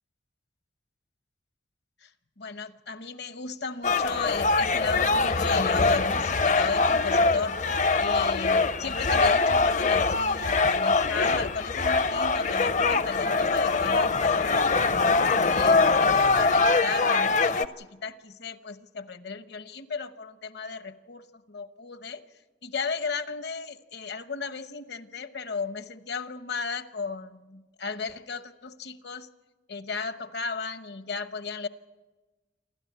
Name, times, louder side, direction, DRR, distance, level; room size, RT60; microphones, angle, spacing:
voice 1, 2.4-15.0 15.5-22.2 22.6-29.3 29.7-31.7, left 4 dB, 65° left, 11 dB, 1.0 m, -35 dB
sound 1, 3.8-17.7, left 3 dB, 40° left, 0.6 m, -23 dB
28.0 x 12.5 x 9.4 m, 1.2 s
head